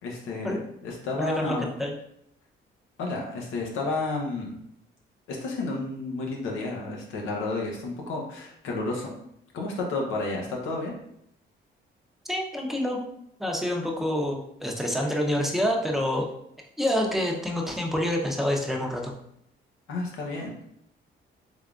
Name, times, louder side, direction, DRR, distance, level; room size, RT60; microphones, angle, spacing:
voice 1, 0.0-0.6 0.8-1.7 3.0-4.6 5.3-9.1 9.5-10.9 19.9-20.6, left 3 dB, 90° left, -1 dB, 0.9 m, -31 dB
voice 2, 1.2-1.9 12.3-13.0 13.4-16.3 16.8-19.1, left 1 dB, ahead, 0 dB, 0.6 m, -27 dB
3.6 x 3.4 x 2.4 m, 0.74 s
cardioid pair, 90°, 20 cm